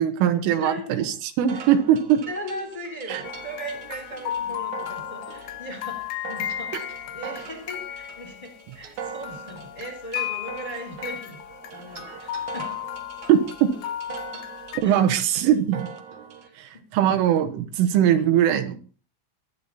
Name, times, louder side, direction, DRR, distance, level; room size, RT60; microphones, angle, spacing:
voice 1, 0.0-2.2 3.1-3.2 13.3-13.7 14.8-15.9 16.6-18.8, right 10 dB, 90° right, 7 dB, 3.9 m, -21 dB
voice 2, 0.6-1.1 1.5-1.6 2.3-11.4 11.7-12.7 14.3-14.4 14.8-15.0 16.4-16.8, right 1 dB, 10° left, 4 dB, 3.0 m, -38 dB
sound 1, 1.5-16.5, right 7 dB, 70° right, 1.8 m, -42 dB
sound 2, 3.2-9.0 9.2-14.8, left 11 dB, 75° left, 2.8 m, -35 dB
23.0 x 9.9 x 4.2 m, 0.38 s
omnidirectional pair, 5.5 m